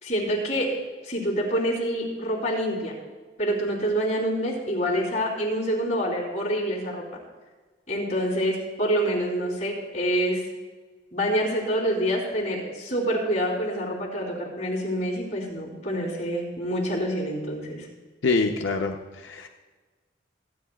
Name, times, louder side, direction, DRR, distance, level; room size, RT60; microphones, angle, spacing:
voice 1, 0.0-0.7 1.0-2.9 3.4-7.0 7.9-10.4 11.1-17.9, equal, 40° left, -4 dB, 3.4 m, -26 dB
voice 2, 18.2-19.5, left 3 dB, 90° left, 3 dB, 0.7 m, -25 dB
28.0 x 9.3 x 2.4 m, 1.3 s
head